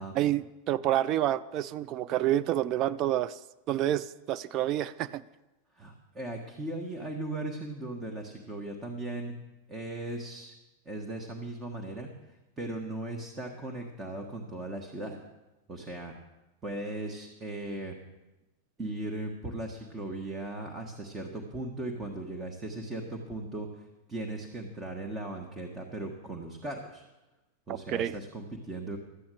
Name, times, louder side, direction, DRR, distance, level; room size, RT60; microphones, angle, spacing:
voice 1, 0.1-3.4 3.7-5.2 27.9-28.2, right 12 dB, 35° right, 13 dB, 0.3 m, -28 dB
voice 2, 5.7-9.4 9.7-10.5 10.8-15.2 15.7-16.1 16.6-17.9 18.8-27.0 27.7-29.0, right 2 dB, 20° right, 2 dB, 1.5 m, -38 dB
13.0 x 8.6 x 6.4 m, 1.0 s
figure-of-eight pair, 90°, 0 cm